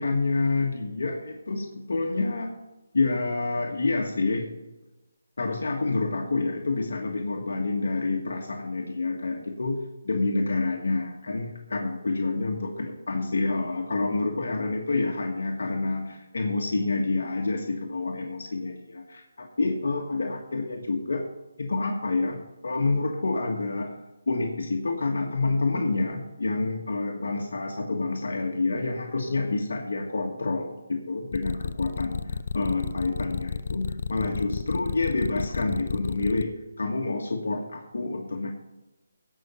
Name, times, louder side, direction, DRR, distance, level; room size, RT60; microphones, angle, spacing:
voice 1, 0.0-2.5 2.9-4.5 5.4-9.8 10.0-21.2 21.6-23.9 24.3-36.5 36.8-38.5, left 3 dB, 75° left, 1 dB, 1.5 m, -28 dB
sound 1, 31.3-36.4, left 5 dB, 50° left, 0.5 m, -31 dB
17.0 x 6.0 x 5.6 m, 1.0 s
hypercardioid pair, 165°, 0 cm